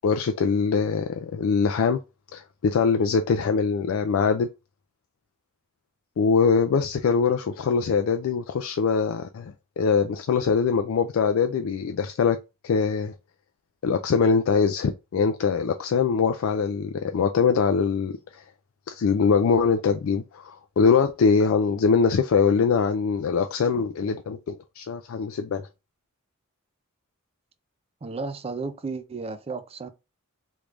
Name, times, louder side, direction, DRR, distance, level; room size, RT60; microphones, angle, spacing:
voice 1, 0.0-2.0 2.3-4.5 6.2-12.4 12.6-13.1 13.8-18.4 18.9-25.7, left 5 dB, 65° left, 0.3 m, -23 dB
voice 2, 28.0-29.9, right 4 dB, 25° right, 0.4 m, -33 dB
3.3 x 3.2 x 2.4 m
head